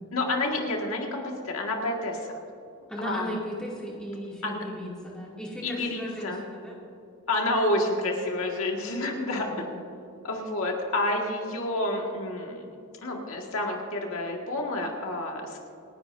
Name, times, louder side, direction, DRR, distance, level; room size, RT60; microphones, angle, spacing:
voice 1, 0.1-2.2 3.0-3.4 4.4-4.6 5.6-6.4 7.3-9.5 10.2-12.7 13.0-15.6, left 2 dB, 75° left, 0 dB, 1.9 m, -29 dB
voice 2, 2.9-6.8 9.4-9.8, equal, 5° left, -5 dB, 2.5 m, -36 dB
27.5 x 11.0 x 2.7 m, 2.6 s
head